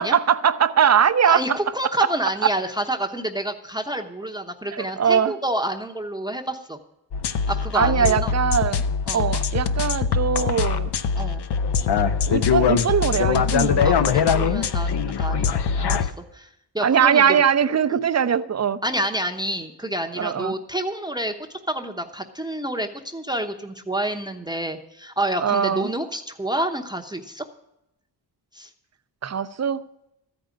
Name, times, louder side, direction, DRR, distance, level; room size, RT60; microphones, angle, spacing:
voice 1, 0.0-1.4 4.7-5.3 7.7-8.8 9.1-10.9 12.3-14.1 16.8-18.8 20.2-20.5 25.4-25.9 29.2-29.8, right 8 dB, 35° right, 13 dB, 0.6 m, -21 dB
voice 2, 1.2-6.8 7.5-8.3 9.1-9.3 11.1-11.4 13.8-16.5 16.7-17.4 18.8-21.3 21.7-27.4 28.5-28.7, right 1 dB, 10° right, 5 dB, 0.9 m, -28 dB
sound 1, 7.1-16.1, left 6 dB, 65° left, 0.8 m, -22 dB
13.5 x 5.2 x 9.0 m, 0.84 s
cardioid pair, 80°, 44 cm